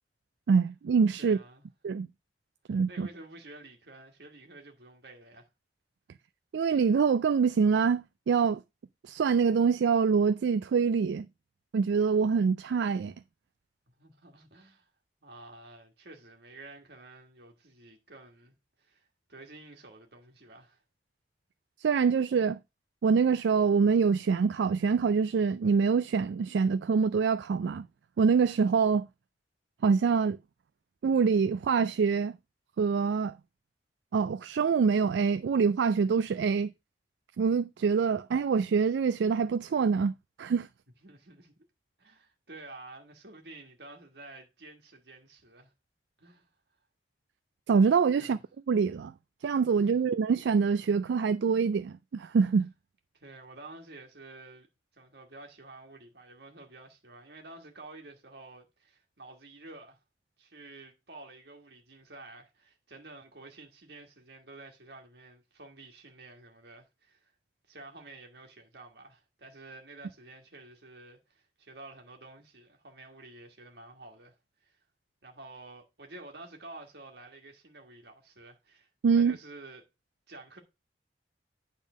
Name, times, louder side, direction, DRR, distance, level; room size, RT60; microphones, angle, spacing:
voice 1, 0.5-1.4 1.8-2.1 2.7-3.1 6.5-8.6 9.0-11.3 11.7-13.1 21.8-22.6 23.0-27.9 28.2-29.1 29.8-30.4 31.0-32.4 32.8-33.4 34.1-36.7 37.4-40.7 47.7-48.4 48.7-49.1 49.4-52.7 79.0-79.4, right 5 dB, 85° right, 0.3 m, -25 dB
voice 2, 1.2-1.7 2.7-5.5 13.9-14.9 15.2-20.8 41.0-41.6 42.0-45.7 46.2-46.5 48.2-48.4 49.8-50.0 53.1-54.7 54.9-60.0 60.4-67.3 67.7-74.3 74.6-74.8 75.2-78.9 79.1-79.9 80.3-80.6, right 2 dB, 65° right, 1.6 m, -50 dB
9.2 x 3.7 x 6.1 m
head